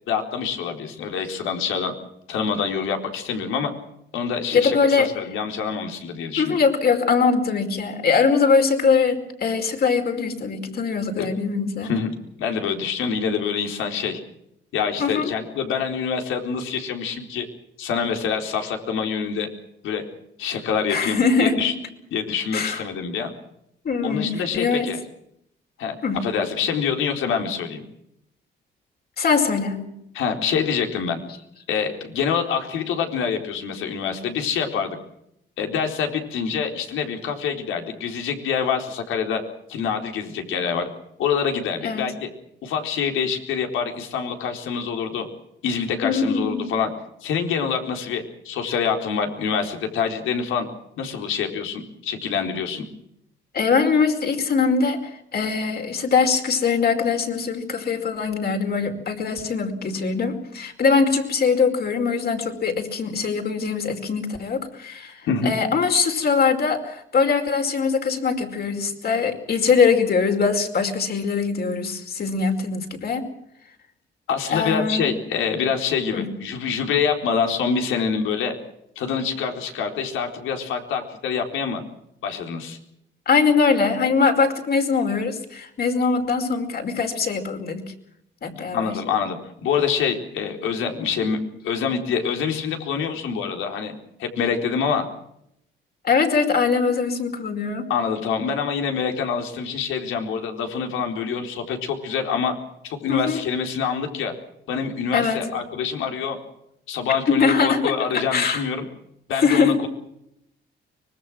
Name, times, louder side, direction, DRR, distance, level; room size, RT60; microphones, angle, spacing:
voice 1, 0.1-1.9 2.3-3.7 4.1-6.6 11.2-11.3 11.8-14.2 14.7-17.5 17.8-19.5 19.8-20.0 20.4-21.7 22.1-23.3 24.0-25.0 25.8-26.0 26.2-27.8 30.1-31.2 31.7-35.0 35.6-39.4 39.7-40.9 41.2-42.3 42.6-45.3 45.6-46.9 47.2-50.7 51.0-52.9 65.3-65.5 74.3-78.5 79.0-81.8 82.2-82.8 88.7-93.9 94.2-95.1 97.9-102.5 102.8-104.3 104.7-106.4 106.9-108.9 109.3-109.9, left 6 dB, 85° left, 4 dB, 4.2 m, -26 dB
voice 2, 4.5-5.2 6.4-11.9 15.0-15.3 20.9-21.7 22.5-22.8 23.8-24.9 26.0-26.2 29.2-29.9 41.8-42.1 46.0-46.7 53.5-73.3 74.5-75.2 76.1-76.2 83.2-87.8 88.4-89.0 96.0-97.9 103.1-103.4 105.1-105.5 107.3-108.0 108.3-108.6 109.3-109.9, left 5 dB, 50° left, 5 dB, 5.0 m, -22 dB
24.5 x 21.5 x 6.2 m, 0.77 s
cardioid pair, 90°, 20 cm